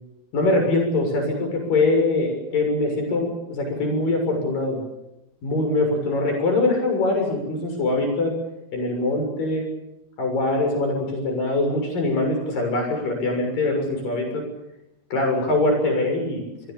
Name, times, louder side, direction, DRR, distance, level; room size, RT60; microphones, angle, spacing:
voice 1, 0.3-4.8 5.4-8.3 8.7-9.7 10.2-14.4 15.1-16.4, left 2 dB, 60° left, 4 dB, 8.4 m, -23 dB
25.5 x 22.5 x 7.1 m, 0.88 s
omnidirectional pair, 4.5 m